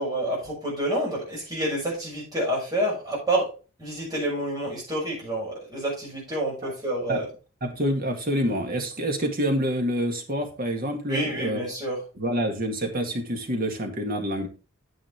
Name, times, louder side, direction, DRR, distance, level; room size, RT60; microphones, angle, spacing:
voice 1, 0.0-3.5 3.8-7.3 11.1-12.0, right 1 dB, 15° right, -4 dB, 6.5 m, -28 dB
voice 2, 7.6-11.6 12.2-14.5, equal, 40° right, 4 dB, 2.0 m, -27 dB
9.4 x 9.1 x 3.4 m, 0.33 s
head